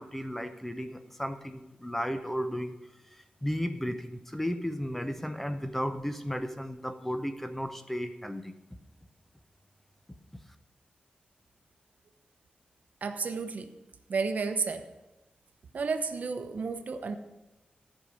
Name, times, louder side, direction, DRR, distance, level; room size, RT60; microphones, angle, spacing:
voice 1, 0.0-2.8 3.1-8.5, equal, 5° left, 8 dB, 0.7 m, -34 dB
voice 2, 13.0-13.7 14.1-14.9 15.7-17.2, right 4 dB, 60° right, 8 dB, 0.8 m, -32 dB
13.5 x 5.5 x 6.3 m, 1.0 s
wide cardioid pair, 125°, 3 cm